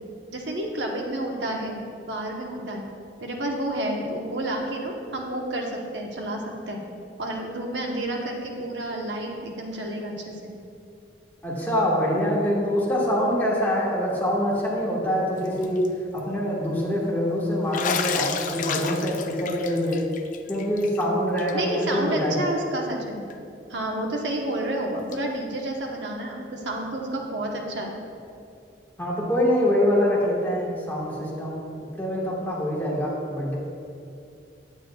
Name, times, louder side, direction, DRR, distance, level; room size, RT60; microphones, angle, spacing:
voice 1, 0.3-1.8 2.1-2.8 3.2-6.8 7.2-10.5 21.5-23.2 23.7-28.0, right 1 dB, 85° right, 1 dB, 0.9 m, -30 dB
voice 2, 11.4-15.8 16.1-20.0 20.5-22.5 29.0-31.6 32.0-33.6, equal, 10° left, -6 dB, 1.4 m, -24 dB
Bathtub (filling or washing), 15.4-15.9 16.2-16.3 17.7-21.0 21.4-21.5 21.8-21.9 23.3-23.4 25.1-25.2, left 7 dB, 45° left, 0.4 m, -31 dB
9.1 x 8.4 x 2.2 m, 2.5 s
head